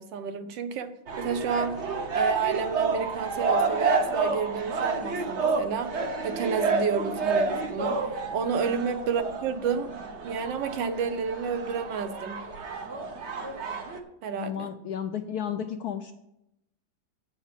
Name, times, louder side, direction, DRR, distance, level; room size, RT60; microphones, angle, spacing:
voice 1, 0.0-9.9 10.2-12.4 14.2-14.7, right 6 dB, 70° right, 10 dB, 1.4 m, -30 dB
sound 1, 1.1-14.0, right 4 dB, 45° right, 1.0 m, -30 dB
voice 2, 14.3-16.1, left 9 dB, 75° left, 6 dB, 0.9 m, -33 dB
8.3 x 6.2 x 7.4 m, 0.85 s
omnidirectional pair, 2.1 m